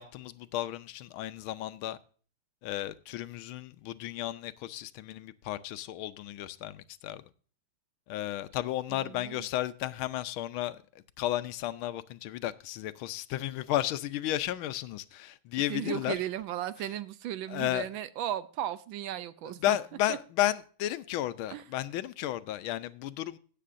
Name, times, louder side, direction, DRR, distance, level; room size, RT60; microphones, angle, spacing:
voice 1, 0.0-2.0 2.6-7.2 8.1-16.2 17.5-17.9 19.6-23.4, left 14 dB, 80° left, 1.4 m, -33 dB
voice 2, 8.9-9.5 15.7-19.8 21.5-21.6, right 12 dB, 75° right, 1.3 m, -36 dB
17.0 x 7.5 x 2.5 m
omnidirectional pair, 2.3 m